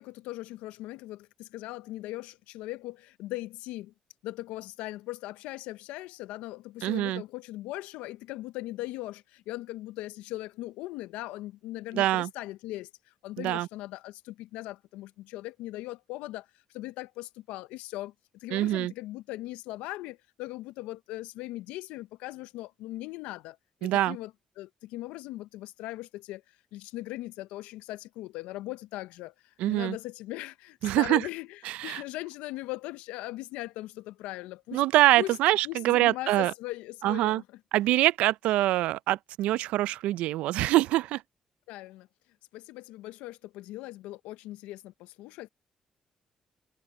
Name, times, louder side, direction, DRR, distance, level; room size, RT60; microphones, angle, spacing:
voice 1, 0.0-3.9 4.2-24.3 24.6-34.8 35.1-35.4 35.6-37.4 41.7-42.1 42.5-45.5, left 17 dB, 85° left, 0.6 m, -39 dB
voice 2, 6.8-7.2 11.9-12.3 13.4-13.7 18.5-18.9 23.8-24.2 29.6-30.0 30.8-31.2 31.7-32.0 34.7-36.5 37.0-37.4 37.7-41.2, right 16 dB, 80° right, 0.5 m, -24 dB
supercardioid pair, 50°, 2 cm